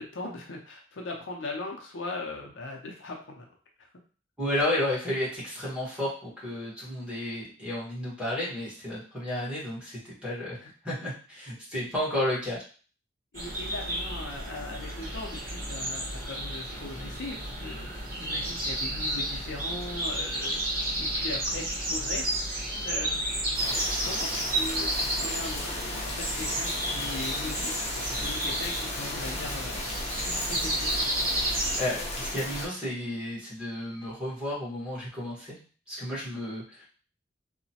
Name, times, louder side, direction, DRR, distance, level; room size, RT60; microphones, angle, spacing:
voice 1, 0.0-3.5 3.8-3.9 13.3-22.4 22.8-23.2 24.0-27.9 28.2-29.8 30.3-31.1, left 2 dB, 75° left, 1 dB, 0.6 m, -39 dB
voice 2, 4.4-12.6 31.8-35.6 35.9-36.9, left 1 dB, 5° right, -9 dB, 1.2 m, -32 dB
sound 1, 13.3-31.8, right 1 dB, 50° right, 0.8 m, -32 dB
sound 2, 23.5-32.7, left 2 dB, 35° left, 0.7 m, -35 dB
2.9 x 2.1 x 2.7 m, 0.40 s
head